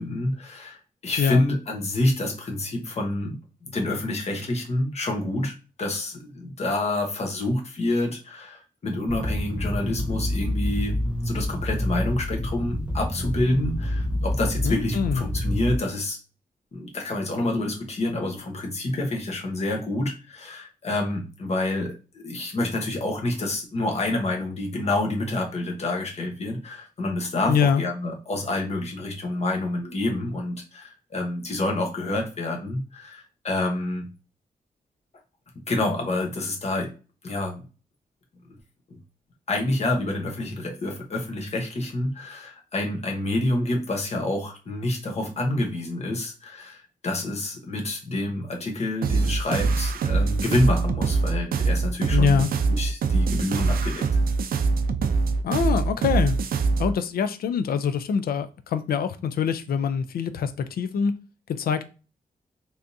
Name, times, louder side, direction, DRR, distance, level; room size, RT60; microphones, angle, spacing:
voice 1, 0.0-16.2 16.7-34.1 35.7-36.9 37.2-37.6 38.5-38.6 38.9-39.0 39.5-54.1, left 2 dB, 45° left, 1 dB, 1.0 m, -28 dB
sound 1, 9.1-15.8, left 1 dB, 5° right, 0.4 m, -27 dB
voice 2, 14.6-15.2 27.5-27.8 52.1-52.5 55.4-56.4 56.8-61.2 61.6-61.8, left 6 dB, 80° left, 11 dB, 0.4 m, -24 dB
sound 2, 49.0-56.9, right 4 dB, 75° right, 0.4 m, -23 dB
3.4 x 2.7 x 2.5 m, 0.33 s
wide cardioid pair, 120°, 15 cm